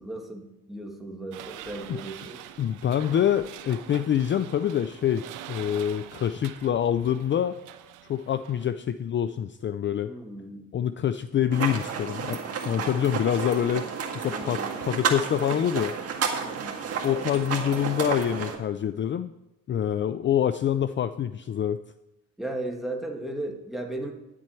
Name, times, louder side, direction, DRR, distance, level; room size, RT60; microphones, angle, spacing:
voice 1, 0.0-2.5 10.0-10.7 12.8-12.9 14.2-14.8 16.4-16.8 22.4-24.1, right 2 dB, ahead, 1 dB, 1.8 m, -36 dB
sound 1, 1.3-8.7, right 12 dB, 90° right, 0.7 m, -44 dB
voice 2, 2.6-7.6 8.1-10.1 10.7-13.8 14.1-15.9 17.0-19.3 19.7-21.8, left 9 dB, 40° left, 12 dB, 0.4 m, -26 dB
sound 2, 11.5-18.6, right 6 dB, 55° right, 1.9 m, -31 dB
11.0 x 7.7 x 4.5 m, 0.95 s
cardioid pair, 90°, 30 cm